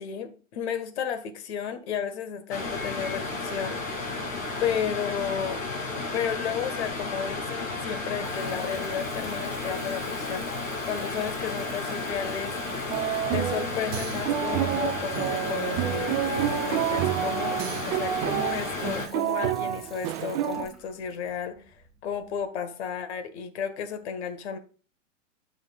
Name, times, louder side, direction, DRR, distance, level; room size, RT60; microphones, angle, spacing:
voice 1, 0.0-4.1 4.6-5.6 6.1-12.6 13.3-17.6 17.9-24.6, left 7 dB, 60° left, 1.7 m, -33 dB
sound 1, 2.5-19.1, left 3 dB, 90° left, 3.4 m, -33 dB
Water tap faucet / Bathtub (filling or washing) / Trickle dribble, 7.6-22.4, right 2 dB, ahead, 2.1 m, -51 dB
sound 2, 12.9-20.7, right 12 dB, 35° right, 0.7 m, -29 dB
12.5 x 6.4 x 2.5 m
hypercardioid pair, 115°, 38 cm